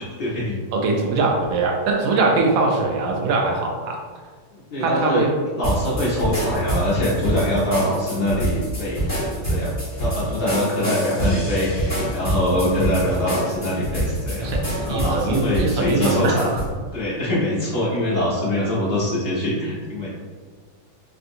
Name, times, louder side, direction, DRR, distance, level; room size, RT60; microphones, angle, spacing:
voice 1, 0.0-0.6 4.5-5.2 5.6-9.7 10.0-16.6 16.9-20.1, left 1 dB, 80° left, -7 dB, 0.5 m, -24 dB
voice 2, 0.7-4.0 4.8-5.3 14.4-16.5, right 3 dB, 80° right, 0 dB, 1.3 m, -22 dB
sound 1, 5.6-16.7, right 1 dB, 10° left, 0.9 m, -26 dB
3.5 x 2.6 x 2.6 m, 1.6 s
omnidirectional pair, 2.0 m